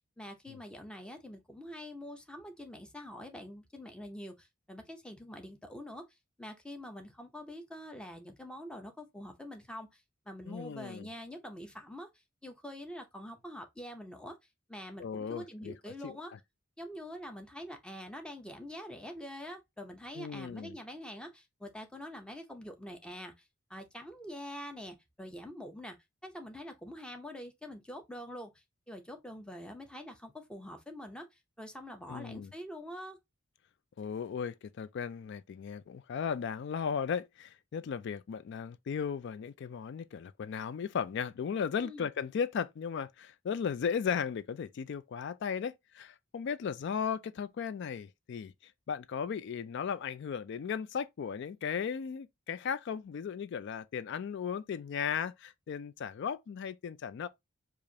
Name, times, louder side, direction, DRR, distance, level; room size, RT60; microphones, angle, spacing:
voice 1, 0.2-6.0 6.4-10.0 10.3-12.1 12.4-14.3 14.7-16.3 16.8-23.4 23.7-26.0 26.2-31.3 31.6-33.2 41.8-42.1, equal, 5° left, 0.6 m, -45 dB
voice 2, 10.5-11.1 15.0-16.2 20.2-20.8 32.1-32.5 34.0-57.3, left 7 dB, 55° left, 0.3 m, -36 dB
4.8 x 2.5 x 2.7 m
head